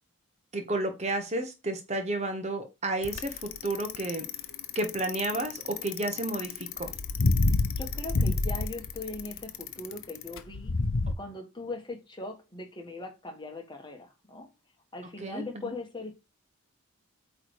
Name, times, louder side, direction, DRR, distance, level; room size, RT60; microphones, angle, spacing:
voice 1, 0.5-4.3 4.7-6.9 15.2-15.7, right 2 dB, 30° right, 1.1 m, -32 dB
Bicycle, 3.0-11.1, left 3 dB, 70° left, 0.8 m, -28 dB
voice 2, 7.8-10.7 11.2-14.5 14.9-16.1, left 2 dB, 20° left, 1.4 m, -40 dB
8.5 x 3.3 x 4.7 m
head